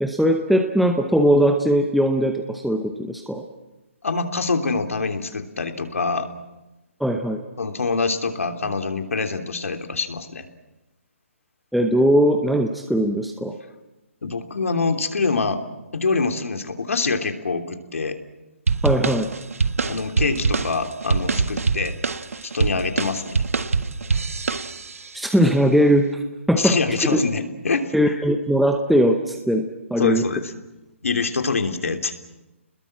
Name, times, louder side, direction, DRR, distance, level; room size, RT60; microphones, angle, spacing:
voice 1, 0.0-3.4 7.0-7.4 11.7-13.6 18.8-19.3 25.1-26.2 26.5-26.8 27.1-27.2 27.9-30.2, equal, ahead, 4 dB, 0.8 m, -20 dB
voice 2, 4.0-6.3 7.6-10.4 14.2-15.6 15.9-18.2 19.9-22.0 22.5-23.4 26.6-28.1 30.0-30.5 31.0-32.1, left 4 dB, 80° left, 5 dB, 3.1 m, -25 dB
sound 1, 18.7-25.1, right 4 dB, 85° right, 1.6 m, -24 dB
29.5 x 21.0 x 7.6 m, 1.0 s
hypercardioid pair, 165°, 7 cm